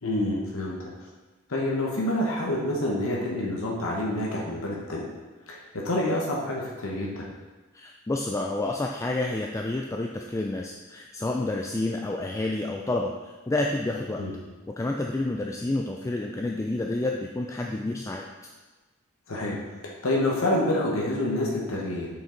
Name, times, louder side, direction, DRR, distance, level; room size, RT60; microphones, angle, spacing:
voice 1, 0.0-0.9 1.5-5.1 5.5-7.3 14.2-14.3 19.3-19.6 20.0-22.1, left 1 dB, 80° left, -3 dB, 1.2 m, -27 dB
voice 2, 7.7-14.2 14.8-18.3, left 2 dB, 15° left, 1 dB, 0.3 m, -29 dB
7.2 x 5.5 x 3.9 m, 1.3 s
head